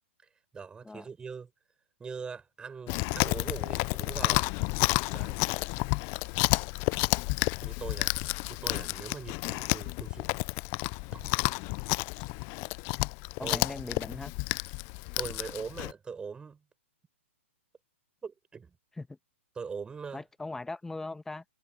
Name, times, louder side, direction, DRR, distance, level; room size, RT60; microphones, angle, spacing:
voice 1, 0.5-1.5 2.0-4.5 5.1-5.4 7.6-8.1 8.5-10.3 11.1-11.3 13.4-13.6 15.2-16.6 18.2-18.8 19.6-20.2, right 5 dB, 15° right, 5.2 m, -41 dB
Chewing mastication, 2.9-15.9, left 31 dB, 35° left, 0.4 m, -30 dB
voice 2, 13.4-14.3 19.0-19.1 20.1-21.4, left 2 dB, 5° left, 1.7 m, -39 dB
hypercardioid pair, 120°, 7 cm